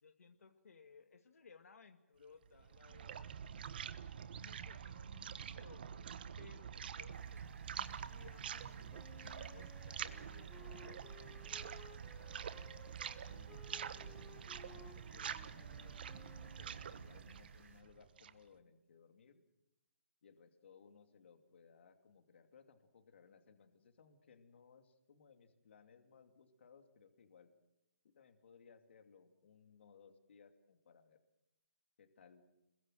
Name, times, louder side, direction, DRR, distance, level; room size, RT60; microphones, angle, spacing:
voice 1, 0.0-3.3 4.3-6.1 6.4-11.8, left 5 dB, 75° left, 6 dB, 1.9 m, -61 dB
sound 1, 2.4-18.5, right 8 dB, 40° right, 1.2 m, -47 dB
sound 2, 7.1-17.8, right 4 dB, 75° right, 3.7 m, -65 dB
Wind instrument woodwind instrument, 8.9-17.0, left 5 dB, 10° left, 1.2 m, -60 dB
voice 2, 13.0-19.4 20.2-27.5 28.0-31.2 32.0-32.4, left 6 dB, 50° left, 7 dB, 2.7 m, -64 dB
27.5 x 21.5 x 7.7 m, 0.90 s
hypercardioid pair, 170°, 8 cm